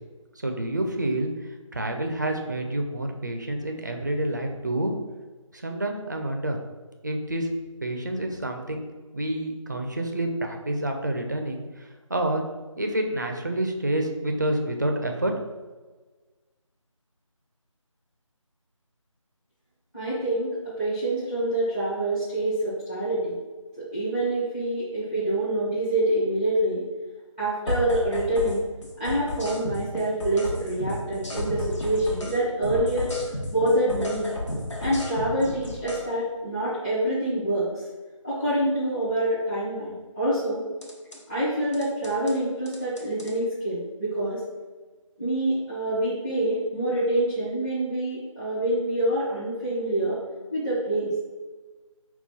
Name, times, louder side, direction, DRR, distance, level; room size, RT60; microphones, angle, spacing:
voice 1, 0.4-1.3 1.7-4.9 5.5-6.6 7.0-7.5 7.8-8.8 9.1-12.4 12.8-15.4, right 1 dB, 35° right, 4 dB, 0.4 m, -28 dB
voice 2, 19.9-23.3 23.9-26.8 27.4-28.6 29.0-34.3 34.8-37.8 38.2-40.6 41.3-44.4 45.2-50.2 50.5-51.1, right 1 dB, 10° left, -13 dB, 0.6 m, -26 dB
sound 1, 27.7-28.6 28.8-32.4 32.6-36.0 40.8-41.2 41.7-42.3 42.7-43.3, left 1 dB, 60° left, 1.2 m, -32 dB
5.6 x 2.3 x 4.0 m, 1.3 s
figure-of-eight pair, 165°, 17 cm